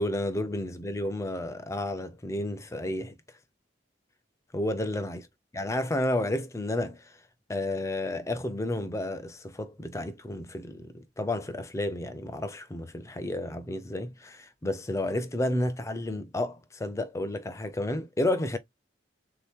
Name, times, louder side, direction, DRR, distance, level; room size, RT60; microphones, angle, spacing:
voice 1, 0.0-3.1 4.5-5.2 5.5-7.1 7.5-18.6, left 1 dB, 15° left, 0.4 m, -31 dB
3.6 x 2.8 x 3.4 m
head